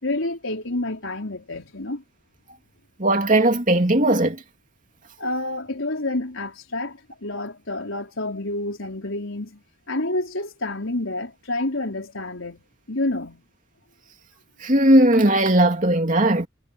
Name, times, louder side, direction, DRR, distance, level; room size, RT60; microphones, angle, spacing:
voice 1, 0.0-2.0 5.2-13.4, left 2 dB, 80° left, 4.3 m, -29 dB
voice 2, 3.0-4.4 14.6-16.5, right 1 dB, 40° right, 2.9 m, -18 dB
head